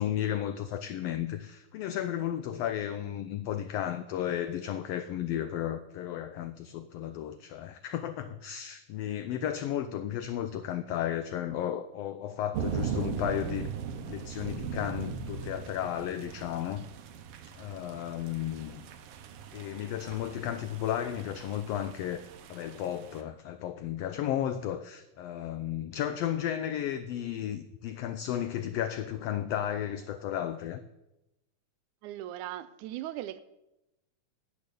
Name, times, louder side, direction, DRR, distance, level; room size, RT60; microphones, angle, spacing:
voice 1, 0.0-13.7 14.1-16.8 17.6-18.9 19.5-30.8, left 10 dB, 85° left, 1.4 m, -34 dB
sound 1, 12.5-23.2, right 7 dB, 70° right, 1.5 m, -39 dB
voice 2, 32.0-33.4, right 13 dB, 90° right, 2.1 m, -38 dB
10.0 x 7.9 x 6.8 m
omnidirectional pair, 3.4 m